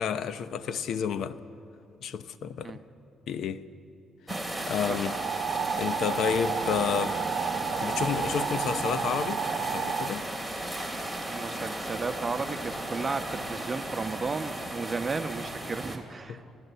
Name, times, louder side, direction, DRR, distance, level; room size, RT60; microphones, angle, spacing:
voice 1, 0.0-1.4 2.0-2.8 3.3-3.6 4.7-5.2 5.6-7.2 7.8-9.4 9.7-10.3 16.3-16.4, left 7 dB, 70° left, 0.8 m, -30 dB
sound 1, 4.3-16.0, right 1 dB, 5° left, 3.0 m, -35 dB
sound 2, 5.1-10.1, right 7 dB, 60° right, 0.9 m, -32 dB
voice 2, 11.3-16.4, right 4 dB, 30° right, 1.0 m, -34 dB
28.0 x 15.0 x 8.2 m
cardioid pair, 90°, 0 cm